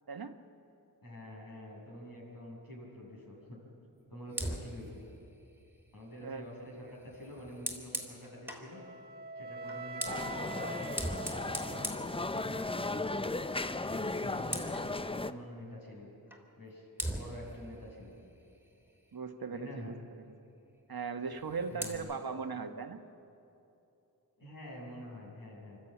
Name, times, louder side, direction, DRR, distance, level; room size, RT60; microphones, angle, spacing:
voice 1, 1.0-3.6 4.1-5.1 5.9-8.8 9.4-12.1 12.4-13.3 13.9-16.1 16.6-18.2 19.5-19.9 21.7-22.1 24.4-25.8, left 1 dB, 55° left, -3 dB, 6.3 m, -47 dB
Fire, 4.3-8.7 9.6-12.9 13.2-13.5 13.8-14.9 16.3-16.4 17.0-19.3 21.2-22.0, right 1 dB, 5° right, 3.1 m, -42 dB
Wind instrument woodwind instrument, 8.7-12.8, right 2 dB, 25° right, 1.9 m, -44 dB
sound 1, 10.0-15.3, left 2 dB, 15° left, 0.5 m, -36 dB
voice 2, 19.1-20.2 20.9-23.0, right 5 dB, 60° right, 7 dB, 1.3 m, -39 dB
25.0 x 13.0 x 8.8 m, 2.9 s
wide cardioid pair, 65°, 40 cm